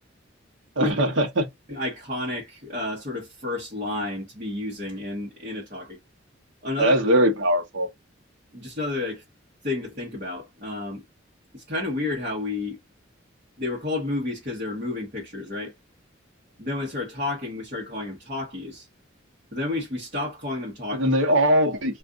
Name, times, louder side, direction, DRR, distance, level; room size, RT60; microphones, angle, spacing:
voice 1, 0.8-1.5 6.8-7.9 20.9-22.0, right 1 dB, 70° right, 1.0 m, -21 dB
voice 2, 1.7-6.0 6.6-6.9 8.5-9.2 9.6-11.0 11.5-12.8 13.6-15.7 16.6-18.9 19.5-21.1, left 2 dB, 45° right, 1.1 m, -31 dB
2.5 x 2.5 x 3.5 m
head